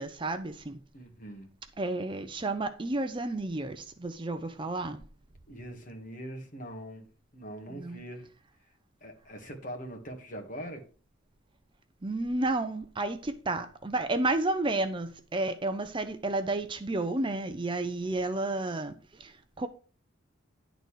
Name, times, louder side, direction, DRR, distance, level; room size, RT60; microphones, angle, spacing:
voice 1, 0.0-0.8 1.8-5.0 7.7-8.0 12.0-19.7, right 2 dB, 25° right, 0.5 m, -31 dB
voice 2, 0.9-1.5 5.5-7.1 7.3-8.3 9.0-10.8, equal, 40° left, 1.9 m, -42 dB
10.5 x 4.0 x 6.4 m
head